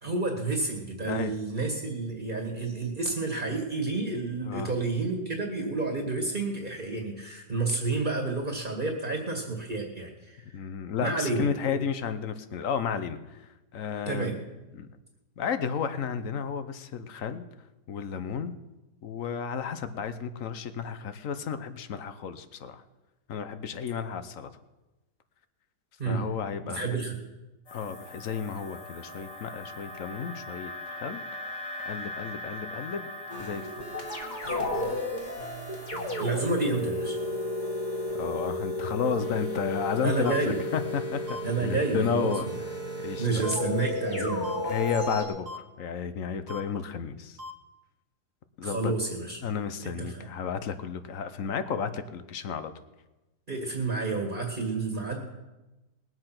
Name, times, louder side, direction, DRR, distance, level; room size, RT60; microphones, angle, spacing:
voice 1, 0.0-10.6 11.0-11.8 14.1-14.4 26.0-26.3 26.6-27.1 35.4-35.6 36.2-37.2 40.0-40.6 41.4-42.4 43.0-44.6 48.6-49.4 49.8-50.3 53.5-55.3, right 3 dB, 30° right, 1 dB, 1.9 m, -30 dB
voice 2, 10.5-13.4 13.7-14.3 14.7-14.9 15.4-17.5 17.9-18.5 19.0-22.8 23.3-24.5 26.1-27.0 27.7-31.2 31.9-33.1 33.4-33.8 38.1-41.2 41.6-42.5 43.0-43.5 44.6-47.4 48.6-48.9 49.4-52.7, left 7 dB, 55° left, 11 dB, 1.1 m, -32 dB
sound 1, 27.7-40.9, left 1 dB, 75° left, 2.8 m, -43 dB
sound 2, 33.3-45.2, left 1 dB, 25° left, 2.2 m, -33 dB
sound 3, 40.2-40.4 41.3-41.4 42.3-42.4 43.4-43.5 44.4-44.6 45.5-45.6 46.5-46.6 47.4-47.5, left 2 dB, 70° right, 1.8 m, -38 dB
20.5 x 7.8 x 6.0 m, 1.1 s
omnidirectional pair, 1.8 m